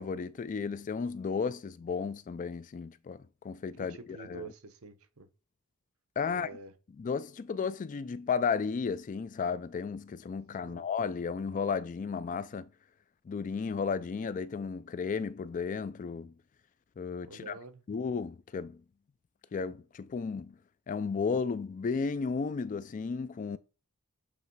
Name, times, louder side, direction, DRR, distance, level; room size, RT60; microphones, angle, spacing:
voice 1, 0.0-4.5 6.2-6.5 7.0-12.7 13.3-16.3 17.0-17.6 17.9-18.8 19.5-20.6 20.9-23.6, left 5 dB, 35° left, 0.3 m, -34 dB
voice 2, 3.7-5.3 6.3-6.7 10.6-10.9 17.2-17.8, right 4 dB, 65° right, 1.0 m, -47 dB
7.9 x 3.1 x 4.7 m
head